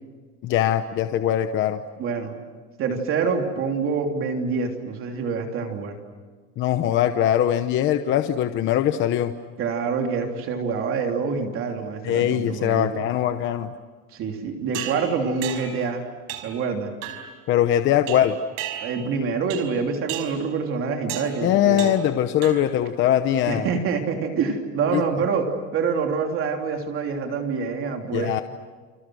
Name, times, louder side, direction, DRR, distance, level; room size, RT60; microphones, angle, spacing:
voice 1, 0.4-1.8 6.6-9.3 12.0-13.7 17.5-18.4 21.4-23.7 24.9-25.0 28.1-28.4, left 11 dB, 30° left, 9 dB, 0.9 m, -21 dB
voice 2, 2.0-2.4 2.8-6.0 9.6-12.9 14.1-16.0 16.4-16.9 18.8-21.9 23.5-25.5 25.7-28.4, right 5 dB, 35° right, 3 dB, 3.2 m, -26 dB
sound 1, 14.7-15.9 16.3-16.6 17.0-17.4 18.1-19.1 19.5-19.8 20.1-20.5 21.1-21.4 21.8-22.1 22.4-22.8, right 11 dB, 55° right, 5.1 m, -35 dB
30.0 x 28.5 x 6.4 m, 1.5 s
cardioid pair, 170°, 39 cm